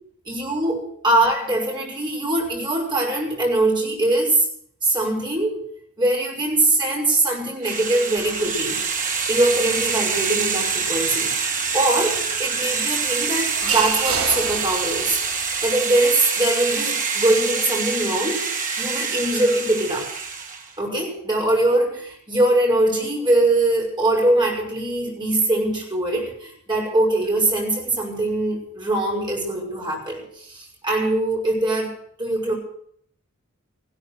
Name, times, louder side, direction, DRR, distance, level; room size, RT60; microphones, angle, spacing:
voice 1, 0.3-4.5 4.8-5.6 6.0-8.8 9.3-11.3 11.7-15.2 15.6-18.4 18.8-20.1 20.8-31.9 32.2-32.5, right 2 dB, 20° right, -1 dB, 5.7 m, -22 dB
sound 1, 7.6-20.7, right 5 dB, 35° right, 1.8 m, -26 dB
sound 2, 8.1-15.7, right 6 dB, 70° right, 1.5 m, -34 dB
15.5 x 12.5 x 6.4 m, 0.65 s
head